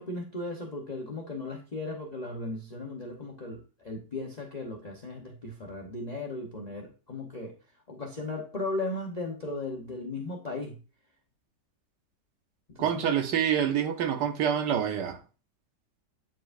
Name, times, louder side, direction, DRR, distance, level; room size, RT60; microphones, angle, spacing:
voice 1, 0.0-7.6 7.9-10.8 12.7-13.1, left 2 dB, 30° left, 0.8 m, -36 dB
voice 2, 12.8-15.2, right 9 dB, 80° right, 1.5 m, -27 dB
8.9 x 4.8 x 2.5 m
omnidirectional pair, 1.8 m